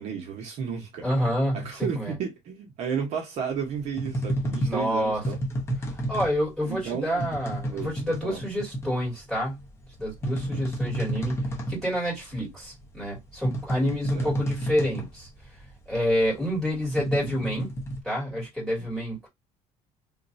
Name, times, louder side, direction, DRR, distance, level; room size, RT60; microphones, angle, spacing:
voice 1, 0.0-1.0 1.5-5.4 6.6-7.3 7.7-7.9 8.2-8.4 10.4-10.7 14.1-14.3 18.8-18.9, right 7 dB, 55° right, 0.9 m, -33 dB
voice 2, 1.0-2.1 4.7-5.2 6.1-9.6 10.0-11.4 11.7-15.3 15.9-17.7 18.0-19.3, equal, 5° left, 2.2 m, -28 dB
sound 1, 3.6-18.0, right 1 dB, 20° left, 0.8 m, -31 dB
3.1 x 2.5 x 2.6 m
cardioid pair, 175°, 14 cm